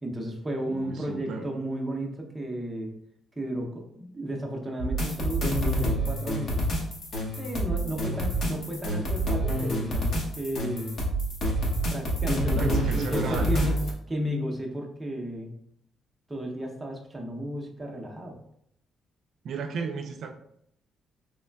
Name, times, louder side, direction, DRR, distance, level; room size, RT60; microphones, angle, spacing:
voice 1, 0.0-2.9 3.4-6.6 7.4-11.0 11.9-13.8 14.1-15.5 16.3-18.4, right 1 dB, 10° right, 0 dB, 0.5 m, -33 dB
voice 2, 0.7-1.5 8.0-8.2 12.5-13.6 19.4-20.3, right 5 dB, 60° right, 4 dB, 0.3 m, -35 dB
sound 1, 4.8-13.9, equal, 45° left, 0.7 m, -27 dB
3.5 x 3.1 x 2.2 m, 0.71 s
cardioid pair, 155°, 0 cm